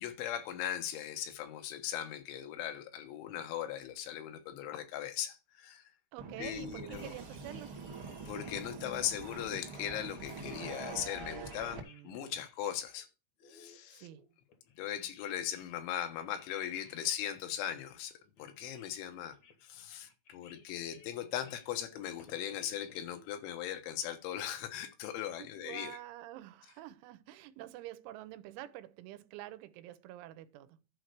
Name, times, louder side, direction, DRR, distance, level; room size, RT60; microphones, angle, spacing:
voice 1, 0.0-5.8 6.4-7.1 8.3-13.1 13.5-14.1 14.8-19.4 19.6-26.0, left 10 dB, 85° left, 3.7 m, -39 dB
voice 2, 6.1-7.9 11.7-12.4 13.9-14.3 25.4-30.8, right 14 dB, 90° right, 3.3 m, -48 dB
sound 1, 6.2-11.8, right 4 dB, 55° right, 1.4 m, -45 dB
sound 2, 6.9-8.7 9.1-9.2 9.6-10.8 11.1-13.1 13.4-15.8 16.2-23.3, left 5 dB, 65° left, 1.8 m, -61 dB
11.0 x 4.6 x 6.6 m
omnidirectional pair, 5.3 m